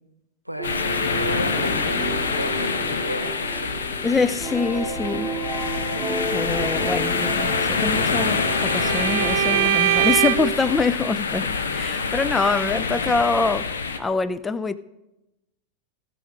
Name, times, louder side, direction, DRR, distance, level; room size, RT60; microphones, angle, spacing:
voice 1, 0.4-3.9, right 1 dB, 90° right, 0.8 m, -34 dB
sound 1, 0.6-14.0, left 5 dB, 65° left, 0.9 m, -26 dB
sound 2, 0.6-9.7, right 3 dB, 10° right, 1.1 m, -32 dB
voice 2, 4.0-5.3 6.3-13.7 14.0-14.8, left 4 dB, 15° left, 0.4 m, -24 dB
Bowed string instrument, 7.6-10.6, right 16 dB, 50° right, 0.4 m, -24 dB
17.0 x 6.2 x 5.1 m
figure-of-eight pair, 90°, 0 cm